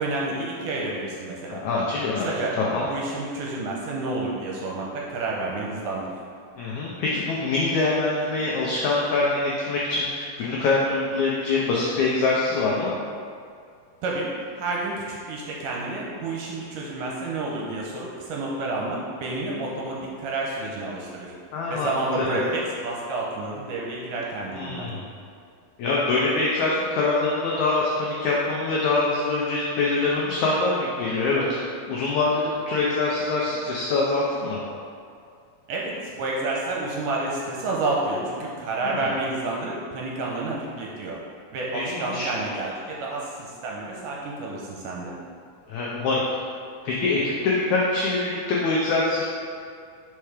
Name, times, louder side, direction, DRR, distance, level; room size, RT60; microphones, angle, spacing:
voice 1, 0.0-1.6 2.2-2.5 2.9-6.1 14.0-14.3 14.6-21.3 21.7-24.9 35.7-41.2 41.5-45.1, right 2 dB, 75° right, -3 dB, 2.1 m, -29 dB
voice 2, 1.5-2.9 6.6-12.9 19.6-19.7 21.5-21.9 22.2-22.4 24.5-25.0 25.8-31.4 31.9-34.6 38.8-39.1 41.7-42.3 45.7-46.2 46.8-49.2, left 3 dB, 80° left, -4 dB, 1.7 m, -24 dB
5.6 x 4.5 x 4.8 m, 2.3 s
omnidirectional pair, 4.2 m